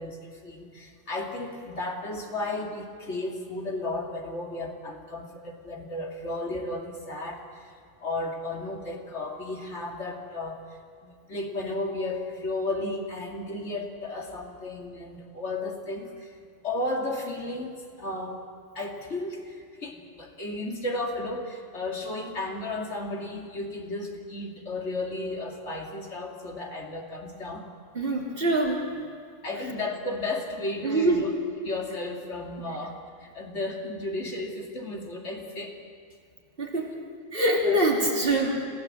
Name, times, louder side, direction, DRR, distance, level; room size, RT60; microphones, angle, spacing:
voice 1, 0.0-7.7 8.0-10.7 11.0-16.3 16.6-18.4 18.7-27.7 29.4-31.3 31.6-35.8 37.6-37.8, left 2 dB, 80° left, 1 dB, 2.8 m, -34 dB
voice 2, 27.9-28.9 30.8-31.3 36.6-36.9 37.3-38.6, right 1 dB, 55° right, -1 dB, 3.2 m, -24 dB
26.0 x 16.5 x 7.6 m, 2.3 s
omnidirectional pair, 1.2 m